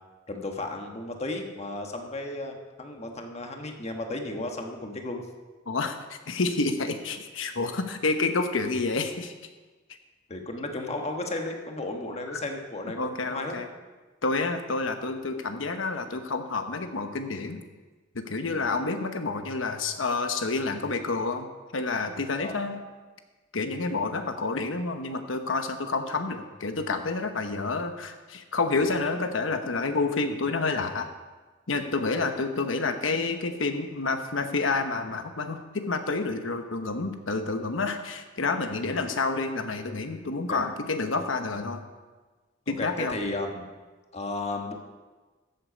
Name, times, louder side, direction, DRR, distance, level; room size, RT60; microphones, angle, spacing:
voice 1, 0.3-5.3 10.3-13.6 18.5-18.7 22.4-22.6 28.7-28.9 32.1-32.2 38.8-38.9 40.5-40.6 42.7-43.7 44.1-44.7, left 2 dB, 35° left, 3 dB, 1.3 m, -34 dB
voice 2, 5.7-9.3 12.3-12.4 13.0-13.7 14.2-17.6 18.1-22.8 23.5-31.1 31.7-41.8 42.7-43.2, left 3 dB, 90° left, 7 dB, 1.1 m, -29 dB
13.5 x 7.8 x 5.2 m, 1.3 s
head